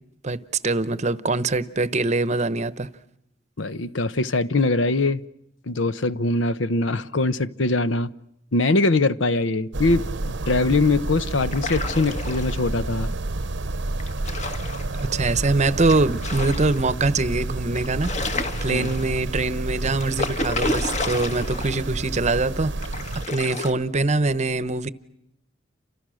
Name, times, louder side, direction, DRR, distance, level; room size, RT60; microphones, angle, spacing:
voice 1, 0.2-2.9 14.9-18.1 18.6-22.9 23.3-24.9, right 3 dB, 35° right, 0.9 m, -23 dB
voice 2, 3.6-5.2 5.7-8.1 8.5-13.1 18.7-18.9, left 2 dB, 70° left, 0.9 m, -22 dB
sound 1, 9.7-23.3, right 2 dB, 65° right, 0.9 m, -30 dB
sound 2, 11.4-12.7 14.0-15.1 15.9-16.9 17.3-17.4 17.7-19.3 19.9-21.9 22.1-22.2 22.8-23.7, left 2 dB, 35° left, 1.8 m, -31 dB
30.0 x 26.5 x 6.4 m
head